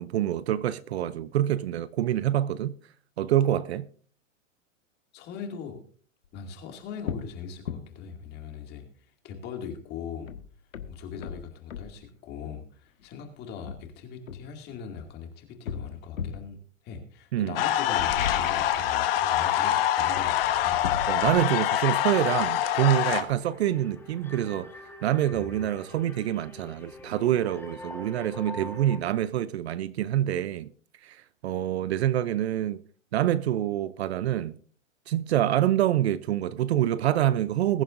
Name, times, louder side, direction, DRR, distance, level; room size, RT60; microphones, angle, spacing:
voice 1, 0.0-2.7 3.2-3.9 17.3-17.6 21.1-24.7 25.0-30.7 31.0-32.8 33.1-34.6 35.1-37.8, right 12 dB, 55° right, 0.6 m, -26 dB
voice 2, 5.1-5.8 6.3-8.8 9.2-10.3 10.9-16.6 16.8-20.8 25.3-25.5, left 7 dB, 25° left, 2.3 m, -40 dB
sound 1, 6.2-6.4 7.0-7.3 7.7-7.8 9.7-9.8 10.3-11.9 13.0-13.1 13.7-15.1 15.7-16.5 17.8-19.0 19.3-19.7 20.0-23.5 23.8-23.9, left 7 dB, 85° left, 1.6 m, -37 dB
sound 2, 17.6-23.2, left 12 dB, 45° left, 1.3 m, -25 dB
sound 3, 20.5-29.0, left 1 dB, 5° left, 1.4 m, -45 dB
21.0 x 11.0 x 2.6 m
hypercardioid pair, 150°, 39 cm